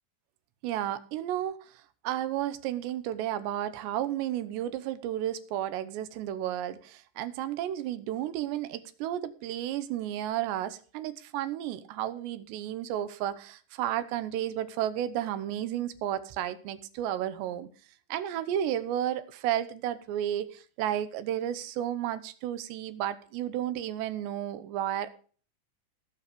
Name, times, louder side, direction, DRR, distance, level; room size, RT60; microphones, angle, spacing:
voice 1, 0.6-1.6 2.0-17.7 18.1-25.1, right 11 dB, 85° right, 3.2 m, -32 dB
17.5 x 6.9 x 5.2 m
omnidirectional pair, 4.9 m